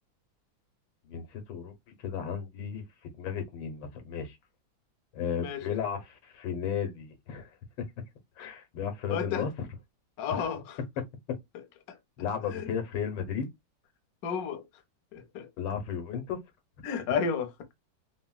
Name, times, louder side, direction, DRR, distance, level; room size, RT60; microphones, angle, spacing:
voice 1, 1.1-1.7 2.0-2.8 3.2-4.4 5.1-7.5 7.8-7.9 8.4-9.5 10.3-10.5 12.2-13.5 15.6-16.4, left 7 dB, 85° left, 1.6 m, -34 dB
voice 2, 5.4-5.8 8.4-8.5 9.1-9.5 10.2-10.8 11.9-12.0 12.5-12.8 14.2-14.6 15.1-15.5 16.8-17.5, left 6 dB, 65° left, 1.0 m, -32 dB
3.8 x 2.1 x 2.2 m
omnidirectional pair, 2.1 m